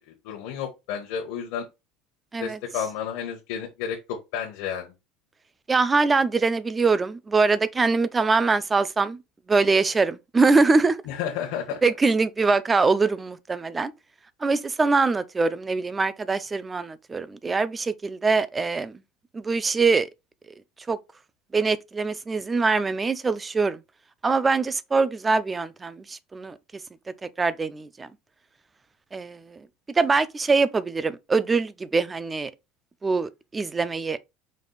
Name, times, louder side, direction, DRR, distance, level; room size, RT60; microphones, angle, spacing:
voice 1, 0.2-1.6 2.4-4.9 11.1-11.8, left 8 dB, 65° left, 1.0 m, -31 dB
voice 2, 5.7-9.2 9.5-11.0 11.8-13.9 14.4-19.0 19.3-20.1 20.9-21.0 21.5-23.8 24.2-26.6 27.2-28.1 29.1-29.7 29.9-32.5 33.0-34.2, right 4 dB, 15° right, 0.3 m, -23 dB
5.2 x 2.4 x 3.8 m
cardioid pair, 165°, 0 cm